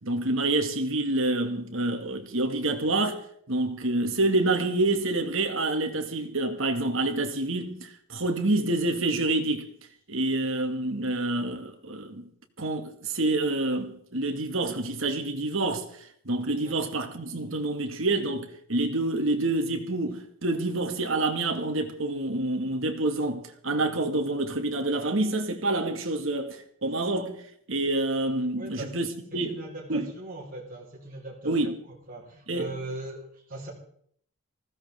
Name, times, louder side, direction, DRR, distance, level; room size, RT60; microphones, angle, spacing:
voice 1, 0.0-3.2 3.5-9.7 10.1-12.3 12.6-15.9 16.3-27.4 27.7-29.6 29.9-30.1 31.4-31.8 32.5-32.7, right 2 dB, 65° right, 2.0 m, -27 dB
voice 2, 28.5-29.0 29.3-33.7, right 2 dB, 40° right, 4.8 m, -40 dB
20.0 x 16.0 x 3.7 m
head